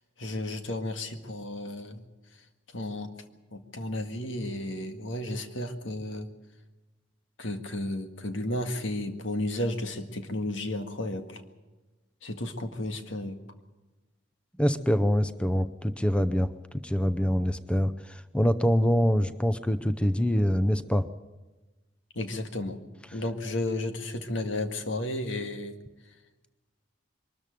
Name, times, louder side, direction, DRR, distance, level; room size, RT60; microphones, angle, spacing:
voice 1, 0.2-2.0 2.7-3.1 3.5-6.3 7.4-11.4 12.2-13.4 22.2-22.8 23.1-25.7, left 1 dB, 80° left, 7 dB, 1.9 m, -33 dB
voice 2, 14.6-16.5 16.8-21.1, equal, 5° left, 12 dB, 0.6 m, -25 dB
23.0 x 13.5 x 9.1 m, 1.2 s
head